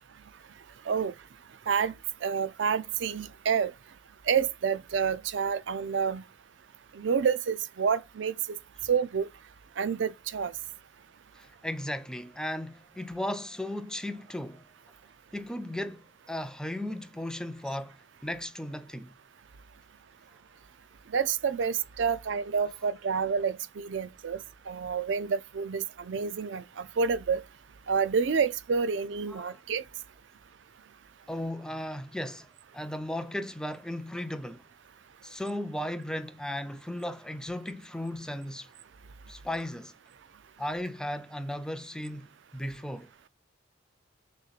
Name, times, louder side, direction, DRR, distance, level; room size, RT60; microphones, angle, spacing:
voice 1, 2.2-3.7 4.3-6.2 6.9-8.6 8.9-9.3 9.8-10.5 21.1-24.4 24.7-27.4 27.9-29.8, right 6 dB, 70° right, 0.4 m, -28 dB
voice 2, 11.4-14.6 15.3-18.0 18.2-19.1 29.3-29.6 31.3-32.5 32.7-34.6 35.2-38.7 39.3-39.9 40.6-42.3 42.5-43.1, left 1 dB, 5° left, 0.4 m, -36 dB
6.5 x 3.1 x 2.4 m
head